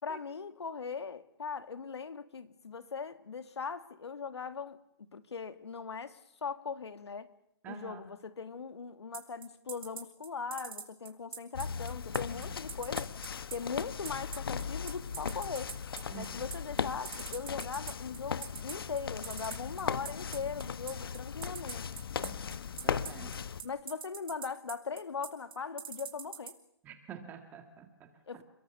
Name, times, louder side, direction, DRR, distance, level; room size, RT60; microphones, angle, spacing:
voice 1, 0.0-4.8 5.1-7.3 7.7-13.1 13.5-15.7 16.1-21.8 23.6-26.5 28.3-28.4, left 5 dB, 80° left, 2.5 m, -40 dB
voice 2, 7.6-8.1 12.3-12.5 16.1-16.4 22.2-22.4 22.8-23.3 26.8-28.4, right 9 dB, 10° right, 2.0 m, -48 dB
sound 1, 9.1-26.5, right 6 dB, 55° right, 4.8 m, -42 dB
sound 2, 11.5-23.6, left 6 dB, 60° left, 1.3 m, -38 dB
29.5 x 21.5 x 7.1 m
hypercardioid pair, 165°, 14 cm